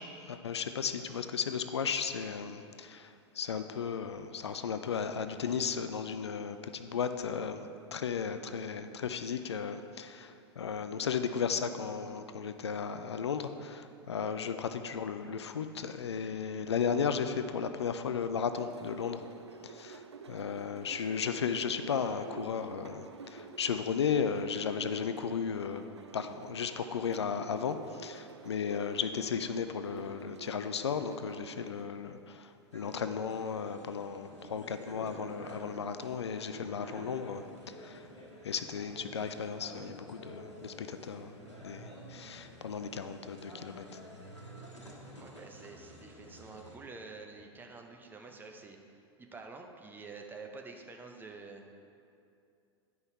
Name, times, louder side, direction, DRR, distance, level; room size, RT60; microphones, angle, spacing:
voice 1, 0.3-3.1 3.4-19.2 19.6-20.0 20.3-25.8 26.1-38.0 38.4-41.3 41.6-43.8, left 6 dB, 70° left, 9 dB, 0.5 m, -35 dB
sound 1, 18.5-31.9, right 5 dB, 75° right, 0.5 m, -50 dB
sound 2, 32.7-46.8, equal, 85° left, 1.4 m, -50 dB
voice 2, 45.2-51.6, right 3 dB, 15° right, 3 dB, 0.8 m, -48 dB
11.0 x 5.5 x 4.5 m, 2.5 s
figure-of-eight pair, 90°, 15 cm